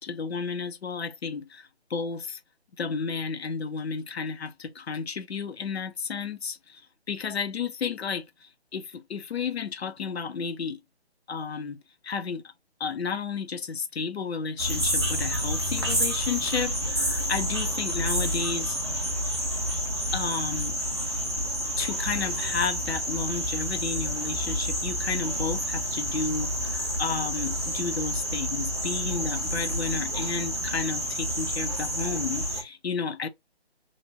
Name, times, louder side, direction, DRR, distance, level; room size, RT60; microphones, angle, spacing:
voice 1, 0.0-2.4 2.8-6.8 7.1-10.8 11.3-11.8 12.0-12.5 12.8-18.8 20.1-20.8 21.8-33.3, left 5 dB, 70° left, 0.6 m, -32 dB
sound 1, 14.6-32.6, equal, 25° right, 0.4 m, -29 dB
2.9 x 2.2 x 2.6 m
figure-of-eight pair, 155°, 33 cm